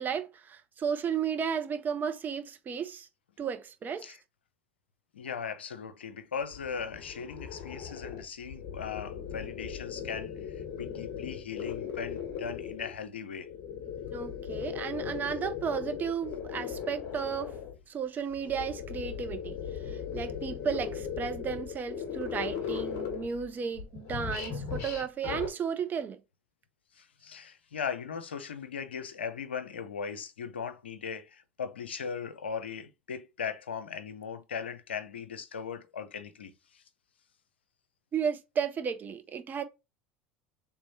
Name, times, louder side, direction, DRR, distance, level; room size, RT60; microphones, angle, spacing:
voice 1, 0.0-3.1 3.4-4.1 14.1-17.5 17.9-19.6 19.9-26.2 38.1-39.6, right 7 dB, 30° right, 0.7 m, -34 dB
voice 2, 5.1-13.5 26.9-36.8, left 6 dB, 85° left, 0.5 m, -38 dB
sound 1, 6.4-13.0 13.4-17.8 18.3-23.5 23.7-25.5, left 7 dB, 50° left, 1.4 m, -38 dB
3.4 x 3.0 x 4.0 m
hypercardioid pair, 75°, 6 cm